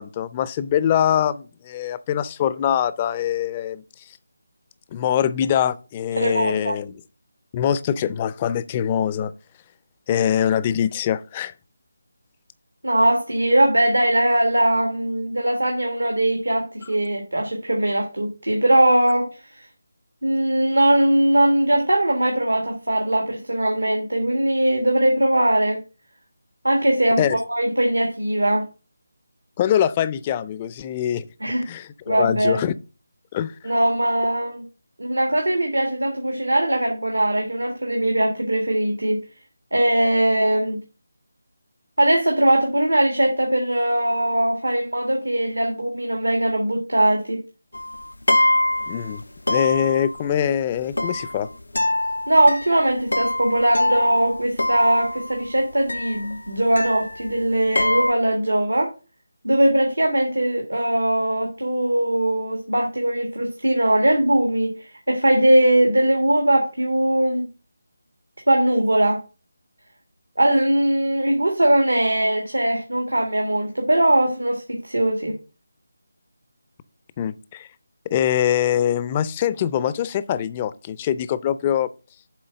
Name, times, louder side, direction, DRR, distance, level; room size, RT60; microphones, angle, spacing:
voice 1, 0.0-3.8 4.9-7.0 7.5-9.3 10.1-11.5 27.2-27.4 29.6-31.2 31.7-32.7 33.3-33.5 48.9-49.2 49.5-51.5 77.2-77.7 78.1-81.9, left 9 dB, 20° left, 0.5 m, -23 dB
voice 2, 6.2-6.7 12.8-19.3 20.2-25.8 26.6-28.7 31.4-31.6 32.1-32.6 33.6-34.6 35.0-39.2 39.7-40.8 42.0-47.4 52.3-58.9 59.4-67.5 68.5-69.2 70.4-75.4, right 1 dB, 90° right, 1.7 m, -20 dB
sound 1, 47.7-49.2 49.5-50.3 50.9-55.5 55.9-57.4 57.7-58.1, left 1 dB, 85° left, 0.5 m, -24 dB
7.5 x 4.2 x 6.6 m
figure-of-eight pair, 160°, 0 cm